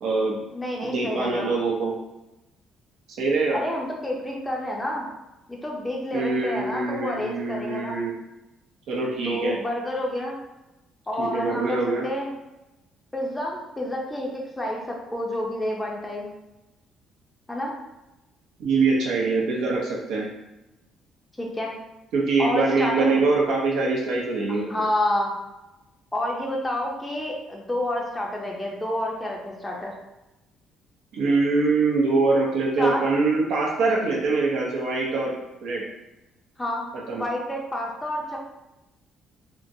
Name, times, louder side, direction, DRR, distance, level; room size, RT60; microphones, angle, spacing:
voice 1, 0.0-0.4 0.8-1.9 3.2-3.6 6.1-8.1 8.9-9.6 11.2-12.1 18.6-20.3 22.1-24.8 31.1-35.3 35.6-35.8 37.1-37.2, right 3 dB, 75° right, -3 dB, 0.6 m, -23 dB
voice 2, 0.5-1.5 3.5-5.1 5.5-8.0 9.2-10.4 11.1-12.3 13.1-16.3 17.5-17.7 21.4-21.7 22.4-23.2 24.5-25.4 26.1-29.9 32.8-33.1 36.6-36.9 37.1-38.4, left 1 dB, 10° left, -2 dB, 0.5 m, -29 dB
2.8 x 2.4 x 2.6 m, 0.98 s
cardioid pair, 140°, 0 cm